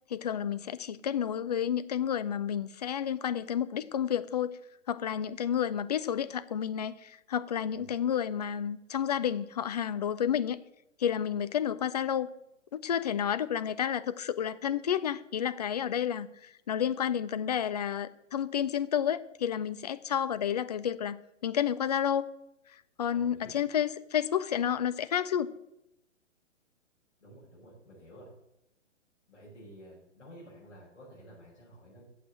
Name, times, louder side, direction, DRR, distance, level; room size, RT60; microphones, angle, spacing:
voice 1, 0.1-4.5 4.9-10.6 11.0-12.3 12.7-22.3 23.0-25.5, left 9 dB, 35° left, 13 dB, 0.5 m, -30 dB
voice 2, 7.8-8.1 23.1-23.5 27.2-28.3 29.3-32.0, equal, 70° left, -7 dB, 5.3 m, -52 dB
8.5 x 7.3 x 8.6 m, 0.85 s
figure-of-eight pair, 125°, 37 cm